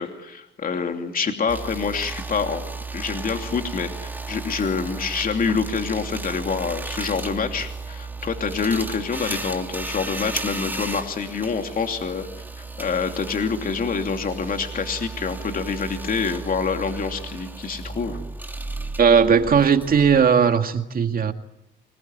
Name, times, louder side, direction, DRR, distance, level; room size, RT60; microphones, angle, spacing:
voice 1, 0.0-2.6 2.9-12.3 12.5-18.2, left 5 dB, 45° left, 2.9 m, -26 dB
sound 1, 1.5-20.5, right 3 dB, 10° right, 2.4 m, -34 dB
voice 2, 19.0-21.3, right 6 dB, 45° right, 2.1 m, -17 dB
25.0 x 21.5 x 9.3 m
cardioid pair, 90°, 20 cm